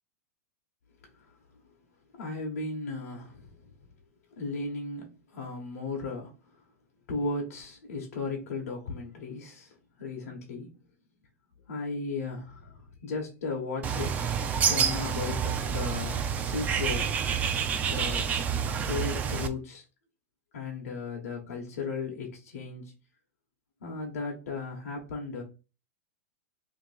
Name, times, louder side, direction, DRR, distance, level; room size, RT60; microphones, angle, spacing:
voice 1, 2.2-3.5 4.4-5.1 5.3-6.3 7.1-9.7 10.0-10.7 11.7-14.2 14.7-17.1 17.9-18.2 18.8-19.8 20.5-22.9 23.8-25.4, left 3 dB, 80° left, 0 dB, 1.0 m, -35 dB
Bird, 13.8-19.5, right 7 dB, 20° right, 0.3 m, -28 dB
2.9 x 2.7 x 4.1 m, 0.32 s
supercardioid pair, 145°, 8 cm